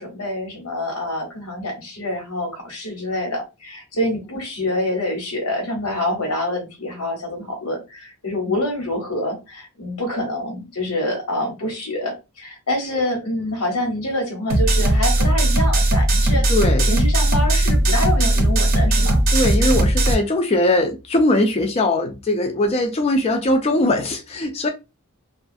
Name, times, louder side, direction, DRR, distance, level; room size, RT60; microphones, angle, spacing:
voice 1, 0.0-16.4 16.8-19.2, left 1 dB, 90° left, 1.1 m, -26 dB
sound 1, 14.5-20.1, right 1 dB, 40° right, 0.6 m, -17 dB
voice 2, 16.5-16.9 19.3-24.7, left 1 dB, 25° left, 0.3 m, -20 dB
2.5 x 2.3 x 2.5 m
head